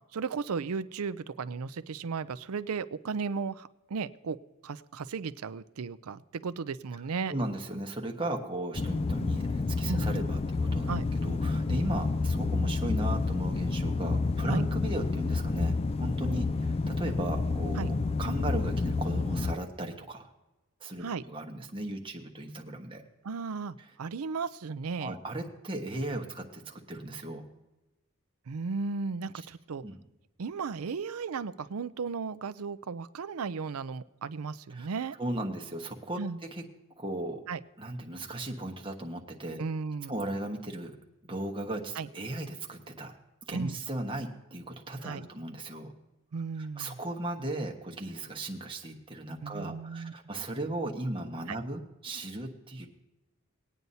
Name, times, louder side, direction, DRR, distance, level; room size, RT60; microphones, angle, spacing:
voice 1, 0.1-4.4 4.6-7.3 9.9-10.0 10.9-11.1 14.5-14.6 17.8-17.9 21.0-21.2 23.2-25.1 28.5-29.8 30.4-35.2 36.2-36.4 37.5-37.6 39.6-40.1 42.0-42.1 43.5-43.8 45.0-45.3 46.3-47.0 49.4-50.1 51.5-51.6, right 5 dB, 75° right, 15 dB, 0.5 m, -35 dB
voice 2, 7.3-11.0 11.2-20.3 20.8-23.0 25.0-27.4 29.8-30.0 34.7-34.9 35.2-36.2 36.5-36.6 37.0-37.4 37.8-39.6 40.1-40.9 41.3-43.1 43.5-45.9 46.6-52.9, right 1 dB, 25° right, 2 dB, 1.3 m, -36 dB
sound 1, 8.8-19.5, left 3 dB, 25° left, 0.3 m, -29 dB
20.5 x 9.2 x 2.7 m, 1.0 s
head